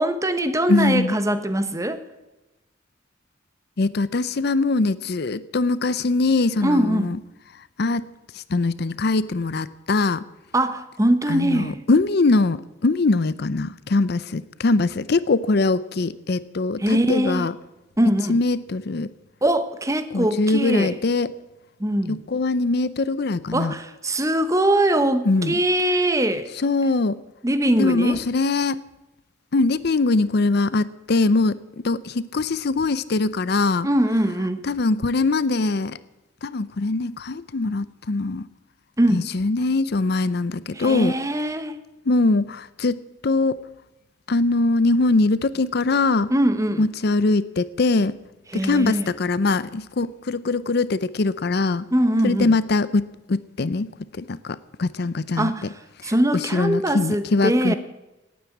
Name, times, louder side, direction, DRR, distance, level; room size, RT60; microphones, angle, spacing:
voice 1, 0.0-2.0 6.6-7.1 10.5-11.8 16.8-17.5 18.0-18.4 19.4-21.0 21.8-22.2 23.5-26.5 27.4-28.2 33.8-34.6 39.0-39.3 40.7-41.8 46.3-46.9 48.5-49.1 51.9-52.5 55.4-55.7 56.0-57.7, right 1 dB, 15° right, 10 dB, 1.0 m, -22 dB
voice 2, 0.7-1.1 3.8-7.2 7.8-8.1 8.3-10.2 11.3-17.5 18.3-19.1 20.1-21.3 22.1-23.7 25.2-25.5 26.6-27.2 27.8-28.8 29.5-31.6 31.8-33.9 34.6-36.0 36.4-38.5 39.1-41.1 42.1-43.6 44.3-46.3 46.8-48.2 48.5-51.8 52.2-55.5 56.0-56.1 56.5-57.7, left 3 dB, 55° left, 17 dB, 0.6 m, -22 dB
18.0 x 9.4 x 8.4 m, 1.0 s
head